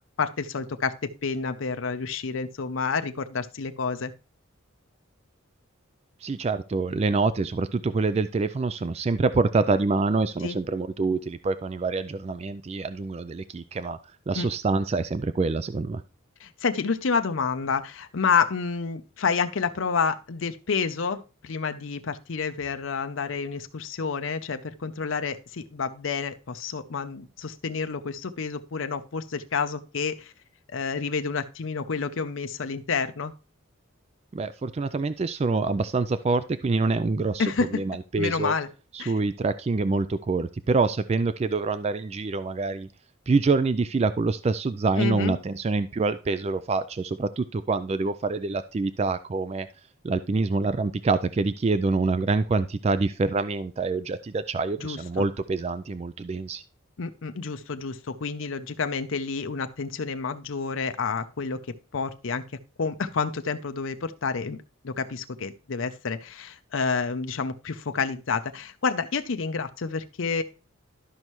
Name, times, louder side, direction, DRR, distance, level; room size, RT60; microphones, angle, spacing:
voice 1, 0.2-4.1 10.4-10.6 14.4-14.5 16.4-30.3 30.7-33.3 37.4-37.8 38.2-38.7 39.0-39.1 45.0-45.4 54.8-55.3 57.0-62.4 62.8-70.4, left 5 dB, 70° left, 8 dB, 0.6 m, -29 dB
voice 2, 6.2-14.0 14.3-16.0 34.3-38.5 38.9-42.9 43.3-49.7 50.0-56.6, right 3 dB, 30° right, 13 dB, 0.3 m, -26 dB
12.5 x 5.5 x 3.1 m, 0.33 s
head